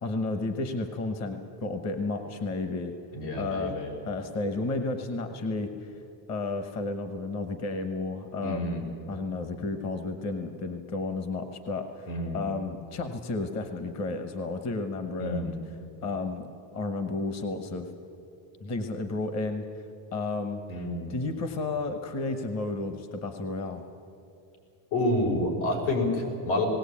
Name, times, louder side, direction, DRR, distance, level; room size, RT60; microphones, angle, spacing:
voice 1, 0.0-2.9 3.4-3.7 4.1-5.9 6.3-8.8 9.1-15.5 16.0-16.5 16.7-17.9 18.6-19.8 20.1-20.6 21.1-23.8, left 3 dB, 35° left, 7 dB, 1.1 m, -32 dB
voice 2, 3.1-3.9 8.4-8.8 12.1-12.4 15.2-15.5 20.7-21.1 24.9-26.7, left 1 dB, 85° left, 0 dB, 5.5 m, -28 dB
19.5 x 17.5 x 8.5 m, 2.6 s
cardioid pair, 150°, 48 cm